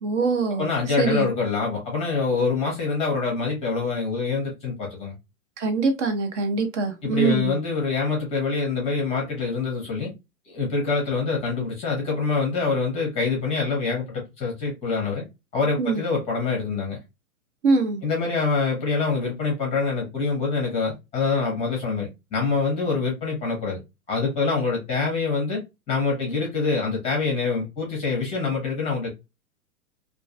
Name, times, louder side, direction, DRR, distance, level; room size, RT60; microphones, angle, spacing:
voice 1, 0.0-0.7 1.0-1.3 5.6-7.6 15.8-16.0 17.6-18.0, right 4 dB, 55° right, 0.7 m, -23 dB
voice 2, 0.6-5.1 7.0-10.1 10.5-15.2 15.5-17.0 18.0-23.8 24.1-25.6 25.9-29.1, left 4 dB, 15° left, 0.6 m, -25 dB
2.4 x 2.2 x 2.4 m
figure-of-eight pair, 115°, 43 cm